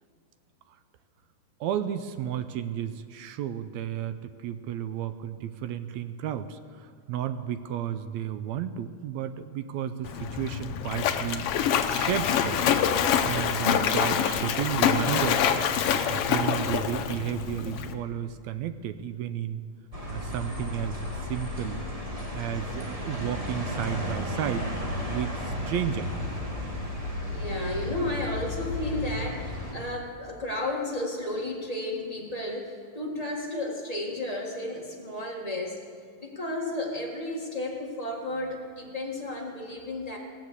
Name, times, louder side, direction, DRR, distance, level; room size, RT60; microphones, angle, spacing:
voice 1, 1.6-11.5 11.9-12.6 13.2-15.5 16.1-19.6 20.1-21.8 22.3-24.7 25.1-26.1, right 10 dB, 80° right, 11 dB, 1.7 m, -32 dB
Splash splatter, 10.0-17.9, left 8 dB, 90° left, 1.2 m, -26 dB
sound 1, 19.9-29.7, left 1 dB, 60° right, 0.3 m, -33 dB
voice 2, 27.3-35.8 36.2-40.2, left 1 dB, 20° left, -1 dB, 0.9 m, -33 dB
18.5 x 7.6 x 8.1 m, 2.1 s
omnidirectional pair, 3.6 m